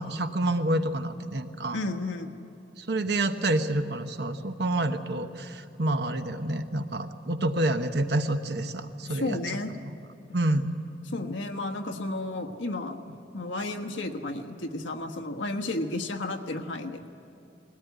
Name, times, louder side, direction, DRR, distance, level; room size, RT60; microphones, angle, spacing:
voice 1, 0.0-1.8 2.8-9.4 9.8-9.9 10.3-10.7, right 1 dB, 60° right, 8 dB, 1.0 m, -28 dB
voice 2, 1.7-2.3 9.1-9.7 10.3-10.4 11.1-13.0 13.3-17.1, left 2 dB, 85° left, 4 dB, 1.3 m, -32 dB
20.5 x 17.5 x 9.3 m, 2.6 s
head